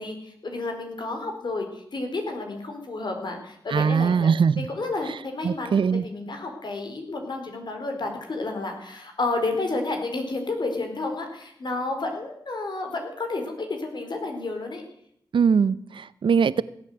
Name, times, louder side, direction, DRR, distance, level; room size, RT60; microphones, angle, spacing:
voice 1, 0.0-4.3 4.6-14.8, left 2 dB, 60° left, 4 dB, 4.3 m, -31 dB
voice 2, 3.7-4.7 5.4-6.0 15.3-16.6, right 6 dB, 70° right, 18 dB, 0.7 m, -21 dB
17.0 x 8.4 x 8.0 m, 0.70 s
cardioid pair, 45°, 9 cm